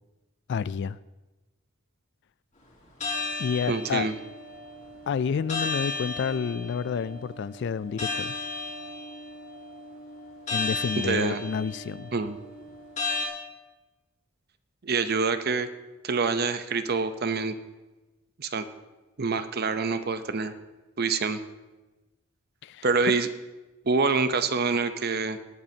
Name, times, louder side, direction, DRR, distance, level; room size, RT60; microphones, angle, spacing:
voice 1, 0.5-1.0 3.4-4.1 5.1-8.3 10.5-12.1 22.6-23.2, left 6 dB, 55° left, 17 dB, 0.3 m, -29 dB
sound 1, 3.0-13.3, left 3 dB, 35° left, 4.6 m, -35 dB
voice 2, 3.7-4.1 11.0-11.4 12.1-12.4 14.8-15.7 16.0-17.5 18.4-18.7 19.2-20.5 21.0-21.4 22.8-23.3 23.9-25.4, right 4 dB, 45° right, 10 dB, 0.7 m, -26 dB
19.5 x 12.5 x 2.8 m, 1.1 s
head